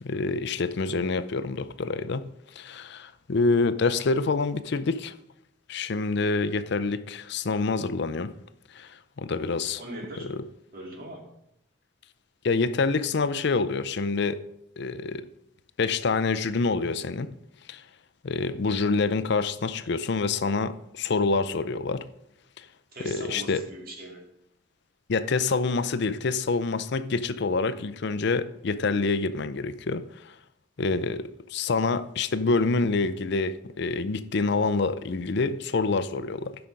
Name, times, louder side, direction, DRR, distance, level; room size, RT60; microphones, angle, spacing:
voice 1, 0.0-2.3 2.6-5.1 5.7-8.3 8.7-9.8 10.3-10.4 12.4-14.4 14.8-15.3 15.8-17.3 17.7-17.8 18.2-22.0 22.6-22.7 23.0-23.6 25.1-30.3 30.8-36.6, left 4 dB, 65° left, 0.5 m, -27 dB
voice 2, 9.8-10.3 10.7-11.2 22.9-24.2, right 1 dB, 50° right, 2.3 m, -40 dB
11.0 x 5.9 x 5.2 m
head